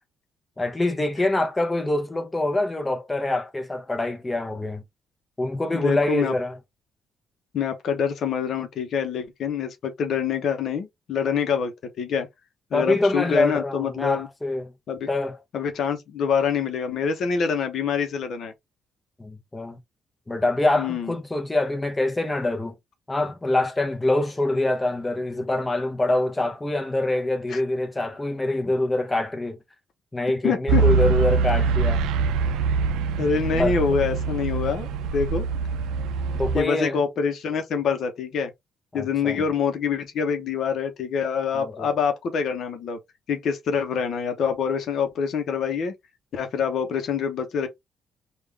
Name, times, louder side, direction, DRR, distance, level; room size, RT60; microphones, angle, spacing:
voice 1, 0.6-4.8 5.4-6.6 12.7-14.7 15.1-15.4 19.2-19.8 20.3-22.7 23.1-29.6 30.1-32.0 33.5-33.7 36.4-37.0 38.9-39.4 41.5-41.9, left 2 dB, 15° left, 0.9 m, -25 dB
voice 2, 5.7-6.3 7.5-12.3 12.7-14.3 14.9-15.1 15.5-18.5 20.8-21.1 27.5-27.6 30.4-30.8 33.2-35.5 36.5-38.5 38.9-43.0 43.3-45.9 46.3-47.7, left 6 dB, 65° left, 0.9 m, -25 dB
sound 1, 30.7-36.6, right 5 dB, 90° right, 0.4 m, -24 dB
3.6 x 2.5 x 3.4 m
cardioid pair, 90°, 0 cm